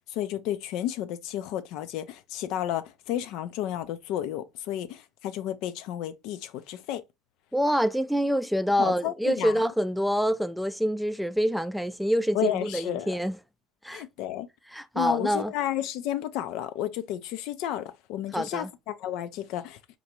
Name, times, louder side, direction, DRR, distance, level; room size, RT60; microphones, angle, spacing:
voice 1, 0.1-7.0 8.8-9.6 12.3-13.2 13.9-14.5 14.9-19.8, left 12 dB, 70° left, 0.4 m, -32 dB
voice 2, 7.5-13.4 13.8-14.0 14.7-15.5 18.3-18.7, equal, ahead, 0.3 m, -26 dB
3.9 x 2.2 x 2.8 m
supercardioid pair, 95°, 0 cm